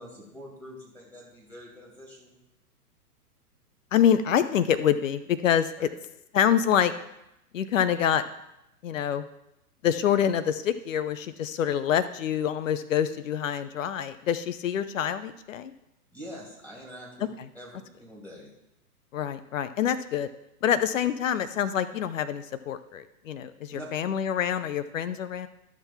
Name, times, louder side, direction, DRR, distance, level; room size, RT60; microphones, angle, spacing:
voice 1, 0.0-2.4 5.8-5.9 16.1-17.1 17.5-18.5 23.7-23.9, equal, 5° left, -4 dB, 2.6 m, -45 dB
voice 2, 3.9-5.9 6.3-6.9 7.5-8.2 8.8-9.3 9.8-15.7 19.1-20.3 20.6-25.5, left 9 dB, 55° left, 13 dB, 0.7 m, -26 dB
12.0 x 6.1 x 4.3 m, 0.86 s
figure-of-eight pair, 120°, 46 cm